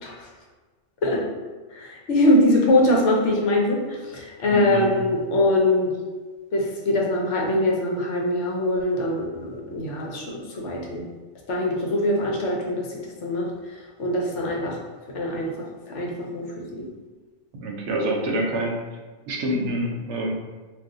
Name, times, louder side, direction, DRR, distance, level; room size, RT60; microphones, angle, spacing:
voice 1, 1.7-5.9 6.5-11.0 11.5-13.5 14.0-14.8 15.1-16.9 18.3-18.4, left 1 dB, 75° left, -2 dB, 1.0 m, -23 dB
voice 2, 4.5-4.9 17.5-18.8 19.3-20.3, right 1 dB, 75° right, 0 dB, 0.9 m, -26 dB
2.4 x 2.3 x 3.6 m, 1.3 s
omnidirectional pair, 1.2 m